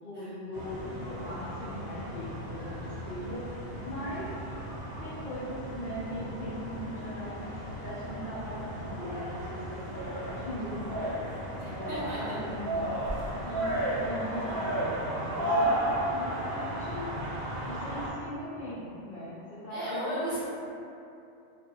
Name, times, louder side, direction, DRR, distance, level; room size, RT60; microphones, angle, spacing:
voice 1, 0.0-3.5 3.8-4.3 5.0-7.4 7.6-11.3 11.8-12.9 13.5-17.1 17.6-20.3, equal, 55° left, -13 dB, 0.7 m, -39 dB
sound 1, 0.5-18.1, right 1 dB, 60° right, 0.8 m, -34 dB
voice 2, 11.6-12.4 19.7-20.4, equal, 25° right, -14 dB, 1.1 m, -36 dB
2.4 x 2.3 x 2.8 m, 2.7 s
omnidirectional pair, 1.2 m